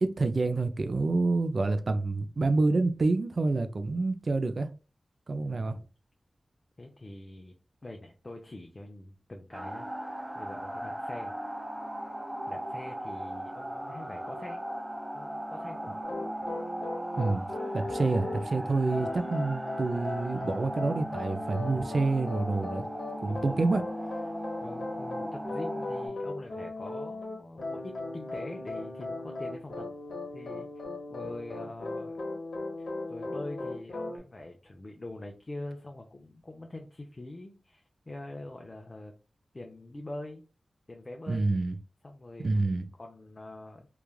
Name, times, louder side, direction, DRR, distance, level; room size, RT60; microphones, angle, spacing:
voice 1, 0.0-4.7 5.3-5.8 17.2-17.5 17.7-22.8 23.2-23.8 41.3-41.8 42.4-42.9, right 3 dB, 55° right, 0.4 m, -28 dB
voice 2, 5.4-5.9 6.8-7.5 7.8-9.9 10.3-11.4 12.5-14.6 15.1-15.9 22.5-22.7 23.3-23.6 24.6-29.9 30.3-30.7 31.1-32.2 32.8-39.1 39.5-40.4 40.9-41.6 42.0-43.9, left 2 dB, 35° left, 0.4 m, -44 dB
sound 1, 9.5-26.1, right 1 dB, 25° right, 0.7 m, -38 dB
sound 2, 16.0-18.4 18.9-34.2, left 2 dB, 85° left, 0.9 m, -38 dB
3.1 x 2.3 x 2.2 m
wide cardioid pair, 100°, 0 cm